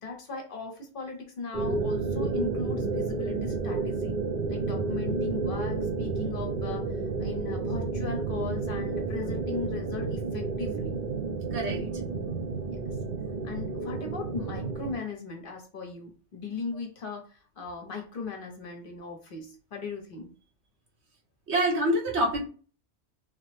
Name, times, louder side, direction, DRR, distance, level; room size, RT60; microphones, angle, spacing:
voice 1, 0.0-4.1 4.5-11.0 11.7-11.9 12.7-12.8 13.4-20.3, left 4 dB, 55° left, 3 dB, 0.8 m, -38 dB
sound 1, 1.5-14.9, right 3 dB, 55° right, 0.6 m, -31 dB
voice 2, 11.5-11.8 21.5-22.4, right 1 dB, 75° right, -1 dB, 1.2 m, -26 dB
3.1 x 2.0 x 3.1 m, 0.38 s
omnidirectional pair, 1.1 m